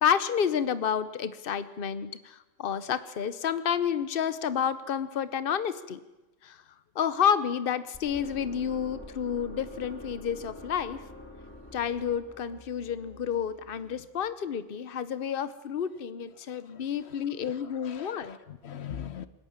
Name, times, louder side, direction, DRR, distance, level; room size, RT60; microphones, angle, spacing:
voice 1, 0.0-6.0 6.4-6.6 7.0-11.0 11.7-18.4, left 8 dB, 60° left, 14 dB, 1.1 m, -30 dB
sound 1, 7.9-14.0, left 2 dB, 10° left, 3.6 m, -46 dB
voice 2, 17.8-19.3, left 9 dB, 85° left, 13 dB, 1.2 m, -41 dB
26.0 x 12.0 x 8.8 m, 1.1 s
omnidirectional pair, 1.1 m